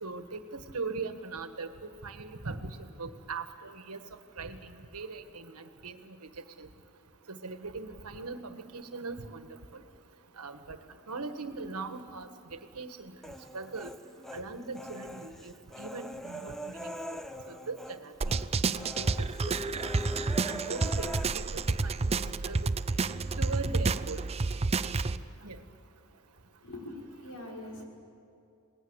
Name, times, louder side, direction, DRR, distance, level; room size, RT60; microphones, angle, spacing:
voice 1, 0.0-1.7 2.0-4.0 4.4-6.0 6.6-6.7 7.3-9.5 10.4-10.8 11.1-13.1 13.5-13.9 14.3-17.2 17.5-18.4 18.9-19.3 19.7-19.9 20.5-22.8 23.4-24.2 25.4-25.6, right 3 dB, 90° right, 8 dB, 1.5 m, -40 dB
Human voice, 13.2-14.4 14.8-18.0 18.2-18.5 18.8-21.2, equal, ahead, 0.8 m, -41 dB
sound 1, 18.2-25.2, right 3 dB, 30° right, 0.5 m, -30 dB
voice 2, 26.6-27.9, left 1 dB, 80° left, -2 dB, 5.5 m, -43 dB
27.5 x 19.5 x 8.1 m, 2.6 s
head